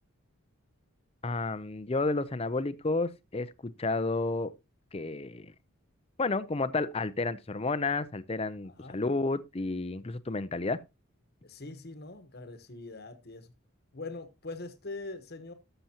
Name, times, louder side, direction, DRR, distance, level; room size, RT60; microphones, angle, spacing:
voice 1, 1.2-4.5 4.9-5.5 6.2-10.8, left 3 dB, 25° left, 0.5 m, -31 dB
voice 2, 8.6-9.0 11.4-13.5 13.9-15.5, left 3 dB, 45° left, 1.2 m, -42 dB
13.0 x 6.9 x 2.9 m
head